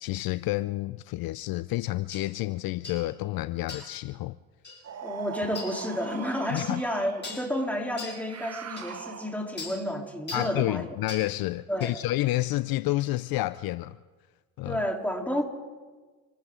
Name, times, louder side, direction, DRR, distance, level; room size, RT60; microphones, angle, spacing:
voice 1, 0.0-4.4 6.5-6.8 10.3-14.0 14.6-14.8, left 17 dB, 60° left, 0.5 m, -29 dB
sound 1, 2.1-2.3 2.8-3.0 3.7-4.0 4.6-4.8 5.5-5.7 6.6-6.7 7.2-7.5 8.0-8.2 8.8-8.9 9.6-9.8 10.3-10.5 11.1-11.3 11.8-12.0, left 3 dB, 25° left, 7.0 m, -40 dB
sound 2, 4.8-7.3 8.0-9.6, right 8 dB, 40° right, 1.1 m, -41 dB
voice 2, 5.0-10.9 11.7-12.0 14.7-15.4, equal, 5° left, 3.7 m, -31 dB
27.0 x 13.5 x 3.9 m
hypercardioid pair, 60°, 41 cm